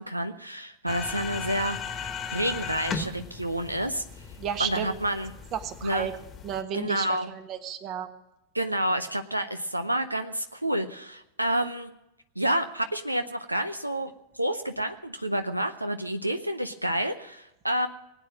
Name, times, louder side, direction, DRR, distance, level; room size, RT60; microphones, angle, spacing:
voice 1, 0.0-1.8 2.3-4.0 4.6-5.3 5.8-6.1 6.7-7.3 8.5-11.9 12.4-17.9, right 1 dB, 85° right, 9 dB, 0.7 m, -29 dB
sound 1, 0.9-6.6, left 6 dB, 25° left, 1.4 m, -37 dB
voice 2, 4.4-4.9 5.5-6.2 6.4-8.1, right 8 dB, 35° right, 10 dB, 1.4 m, -32 dB
20.0 x 9.1 x 7.4 m, 0.89 s
figure-of-eight pair, 90°, 0 cm